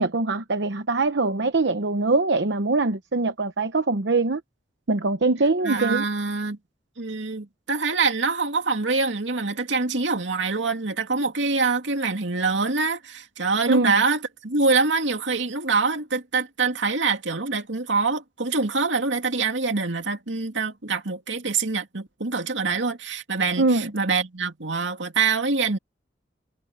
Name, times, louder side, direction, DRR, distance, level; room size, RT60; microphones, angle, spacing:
voice 1, 0.0-4.4 4.9-6.0 13.7-14.0 23.6-23.9, right 3 dB, 70° right, 0.9 m, -22 dB
voice 2, 5.6-6.6 7.0-25.8, right 4 dB, 90° right, 2.5 m, -25 dB
head